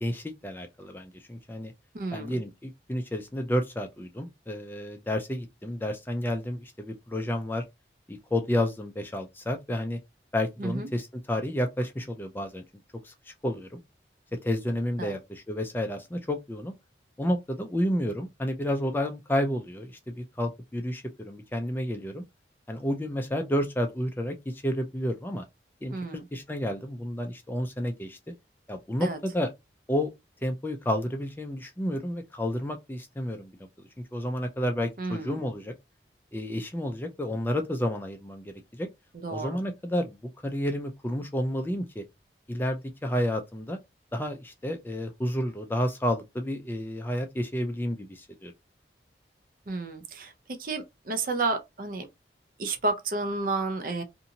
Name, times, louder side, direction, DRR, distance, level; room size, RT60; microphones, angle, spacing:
voice 1, 0.0-1.7 2.1-7.6 8.1-10.0 10.3-12.6 13.0-13.8 14.4-16.7 17.2-22.2 22.7-25.4 25.8-25.9 26.3-28.2 28.7-29.5 29.9-30.1 30.4-33.5 34.1-35.7 36.3-38.9 39.3-40.2 40.4-42.0 42.5-43.8 44.1-48.5, equal, 10° left, 0.3 m, -30 dB
voice 2, 1.9-2.4 10.6-10.9 15.0-15.1 25.9-26.3 29.0-29.2 35.0-35.4 39.1-39.6 49.7-52.1 52.6-54.0, right 3 dB, 50° right, 0.5 m, -31 dB
2.7 x 2.6 x 2.7 m
head